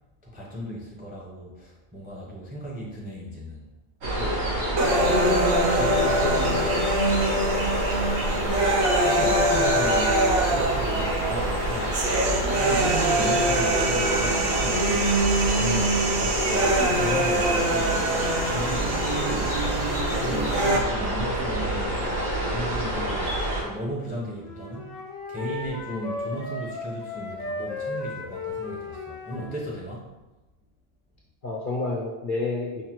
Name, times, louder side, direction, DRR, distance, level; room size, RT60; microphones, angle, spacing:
voice 1, 0.3-3.7 9.0-12.0 12.5-19.6 20.0-25.0 25.3-30.1, equal, 10° right, -4 dB, 0.4 m, -35 dB
sound 1, 4.0-23.6, right 1 dB, 90° right, 1.5 m, -27 dB
sound 2, 4.8-20.8, right 1 dB, 60° right, 0.7 m, -24 dB
voice 2, 5.1-7.1 7.4-7.8 31.4-32.8, left 3 dB, 55° left, -4 dB, 0.6 m, -30 dB
Wind instrument woodwind instrument, 24.4-29.6, left 2 dB, 90° left, 1.2 m, -35 dB
5.4 x 2.1 x 2.9 m, 1.0 s
omnidirectional pair, 1.3 m